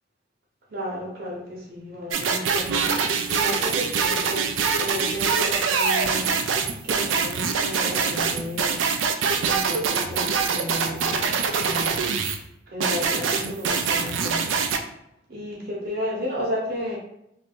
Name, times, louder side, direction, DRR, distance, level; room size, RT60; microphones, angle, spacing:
voice 1, 0.7-2.9 3.3-6.3 6.8-8.8 9.4-12.0 12.7-14.5 15.3-17.0, equal, 55° right, -5 dB, 0.9 m, -33 dB
sound 1, 2.1-12.4 12.8-14.8, right 5 dB, 85° right, 0.4 m, -24 dB
2.8 x 2.6 x 3.5 m, 0.80 s
head